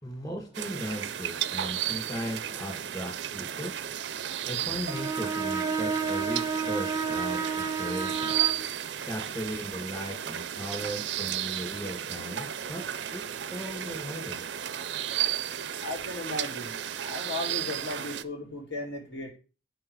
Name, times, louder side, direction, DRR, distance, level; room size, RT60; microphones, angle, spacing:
voice 1, 0.0-3.9 4.5-8.4 9.1-13.2 13.5-14.4, equal, 20° left, 2.3 m, -37 dB
sound 1, 0.5-18.2, right 10 dB, 75° right, 0.5 m, -34 dB
Bowed string instrument, 4.9-8.7, right 5 dB, 20° right, 0.6 m, -30 dB
voice 2, 15.8-19.3, left 2 dB, 80° left, 2.8 m, -36 dB
7.9 x 6.0 x 4.8 m
head